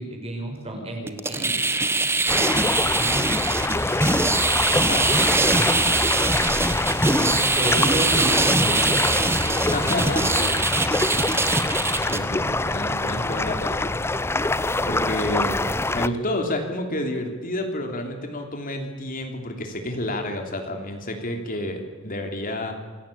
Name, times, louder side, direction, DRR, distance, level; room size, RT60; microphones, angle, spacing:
voice 1, 0.0-1.8 2.1-2.6 2.9-3.3 7.2-9.5, right 1 dB, 30° right, 2 dB, 6.3 m, -31 dB
sound 1, 1.1-12.2, right 2 dB, 10° right, 1.2 m, -22 dB
sound 2, 2.3-16.1, left 2 dB, 10° left, 0.6 m, -25 dB
voice 2, 4.7-7.1 9.5-10.6 12.0-14.0 14.9-15.6 15.9-22.7, left 1 dB, 40° left, 4 dB, 3.3 m, -30 dB
26.5 x 17.5 x 8.7 m, 1.5 s
head